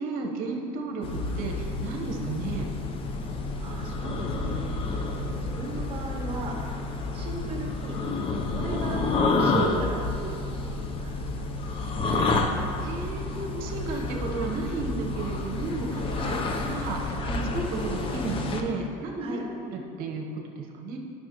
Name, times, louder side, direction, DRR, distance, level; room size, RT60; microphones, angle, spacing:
voice 1, 0.0-2.7 12.3-12.4 12.8-16.1 16.6-21.0, right 3 dB, 65° right, 2 dB, 1.0 m, -33 dB
sound 1, 1.0-18.6, left 3 dB, 35° left, 0.6 m, -29 dB
voice 2, 3.6-6.8 7.1-8.0 8.5-12.0 16.1-16.4 19.2-19.5, right 3 dB, 35° right, 0 dB, 1.4 m, -37 dB
10.5 x 6.0 x 3.0 m, 2.5 s
cardioid pair, 135°, 16 cm